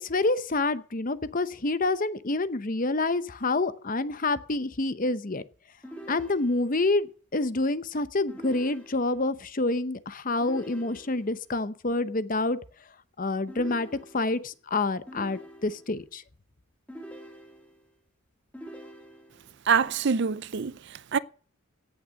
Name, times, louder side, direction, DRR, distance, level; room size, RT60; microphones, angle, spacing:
voice 1, 0.0-5.4 6.1-7.1 7.3-12.6 13.2-13.9 14.1-16.2, left 2 dB, 40° left, 0.8 m, -27 dB
sound 1, 5.8-6.9 8.3-9.3 10.4-11.5 13.5-14.5 15.1-16.0 16.9-17.9 18.5-19.6, right 1 dB, 5° left, 2.2 m, -45 dB
voice 2, 19.7-21.2, right 6 dB, 50° right, 0.5 m, -25 dB
17.0 x 6.7 x 6.4 m
head